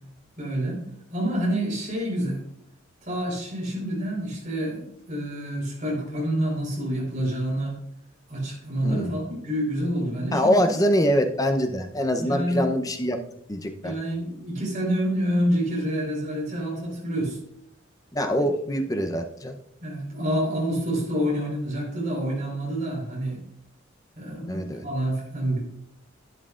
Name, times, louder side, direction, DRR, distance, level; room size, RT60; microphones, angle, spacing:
voice 1, 0.4-0.8 1.1-2.4 3.0-7.8 8.3-10.7 12.2-12.7 13.8-17.4 18.4-18.5 19.8-23.4 24.2-25.6, equal, 40° right, -3 dB, 4.3 m, -27 dB
voice 2, 10.3-13.2 13.5-13.9 18.1-19.6 24.5-24.8, equal, 15° left, 5 dB, 0.7 m, -24 dB
11.0 x 9.8 x 2.5 m, 0.73 s
head